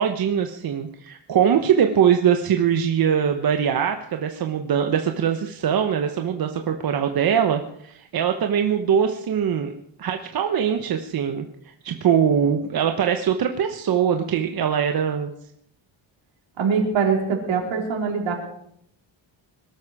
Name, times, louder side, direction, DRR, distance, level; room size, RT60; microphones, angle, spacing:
voice 1, 0.0-9.7 10.0-15.3, right 8 dB, 50° right, 6 dB, 1.0 m, -22 dB
voice 2, 16.6-18.3, right 5 dB, 75° right, 1 dB, 4.4 m, -23 dB
21.5 x 13.0 x 4.9 m, 0.70 s
cardioid pair, 160°, 47 cm